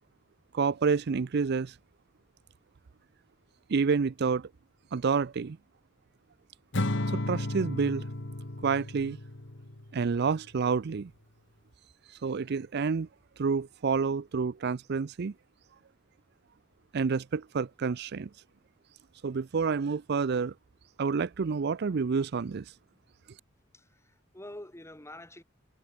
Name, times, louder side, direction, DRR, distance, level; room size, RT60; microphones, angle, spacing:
voice 1, 0.5-1.7 3.7-4.5 4.9-5.6 7.1-8.0 8.6-9.2 9.9-11.1 12.2-13.1 13.4-15.3 16.9-18.3 19.2-20.5 21.0-22.6, right 5 dB, 55° right, 0.5 m, -28 dB
Acoustic guitar / Strum, 6.7-10.1, left 1 dB, 60° left, 1.8 m, -33 dB
voice 2, 23.7-25.4, left 1 dB, 15° left, 2.7 m, -47 dB
head